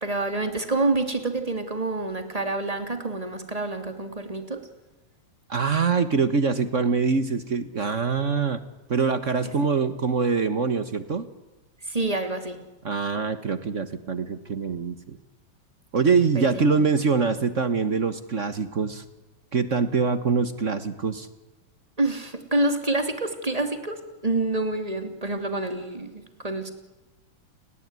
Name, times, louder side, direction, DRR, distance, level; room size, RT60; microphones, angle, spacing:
voice 1, 0.0-4.7 9.4-9.5 11.8-12.6 16.3-16.8 22.0-26.7, right 2 dB, 10° right, 7 dB, 2.8 m, -27 dB
voice 2, 5.5-8.6 8.9-11.3 12.8-15.2 15.9-19.0 19.5-21.3, right 5 dB, 50° right, 12 dB, 0.9 m, -24 dB
30.0 x 20.0 x 9.7 m, 1.1 s
omnidirectional pair, 3.4 m